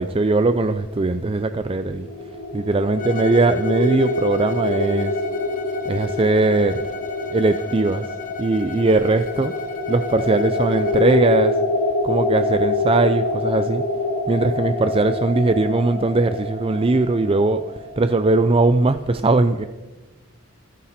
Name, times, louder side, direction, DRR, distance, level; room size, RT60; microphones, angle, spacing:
voice 1, 0.0-2.1 2.5-5.2 5.9-6.8 7.3-8.1 8.4-9.6 9.9-11.6 12.0-13.9 14.3-19.6, right 2 dB, 25° right, 10 dB, 0.5 m, -20 dB
sound 1, 1.7-18.4, left 2 dB, 90° left, 4.8 m, -26 dB
Bowed string instrument, 3.0-11.3, left 4 dB, 40° left, 1.6 m, -37 dB
27.0 x 10.0 x 4.3 m, 1.2 s
head